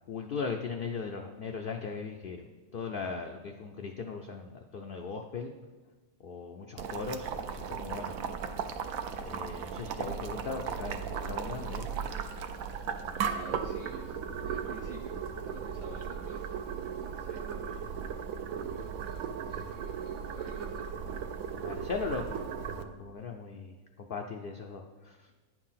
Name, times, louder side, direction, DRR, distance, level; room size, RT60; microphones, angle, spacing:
voice 1, 0.1-5.5 6.2-8.1 9.2-11.9 21.5-25.3, left 4 dB, 60° left, 3 dB, 0.6 m, -38 dB
Boiling, 6.8-22.8, right 7 dB, 75° right, 1.0 m, -36 dB
voice 2, 13.0-15.2 15.4-17.9 18.6-21.2 21.7-21.8 22.3-23.0, right 5 dB, 45° right, 1 dB, 0.7 m, -50 dB
9.5 x 4.6 x 5.7 m, 1.3 s
omnidirectional pair, 1.4 m